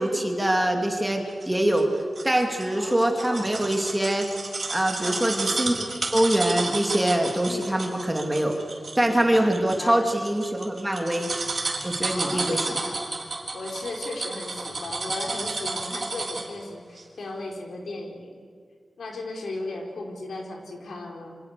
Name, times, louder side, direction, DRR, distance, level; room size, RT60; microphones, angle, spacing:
voice 1, 0.0-1.9 2.2-4.3 4.7-8.6 8.9-11.3 11.8-12.7, right 1 dB, 10° right, 2 dB, 2.6 m, -24 dB
sound 1, 1.4-16.6 17.0-17.1, right 3 dB, 40° right, 4.0 m, -32 dB
voice 2, 2.7-3.6 5.0-5.5 7.4-8.3 9.0-10.1 12.1-13.2 13.5-18.4 19.0-21.4, left 2 dB, 80° left, 1 dB, 4.7 m, -36 dB
27.5 x 26.0 x 6.9 m, 2.1 s
wide cardioid pair, 150°, 0 cm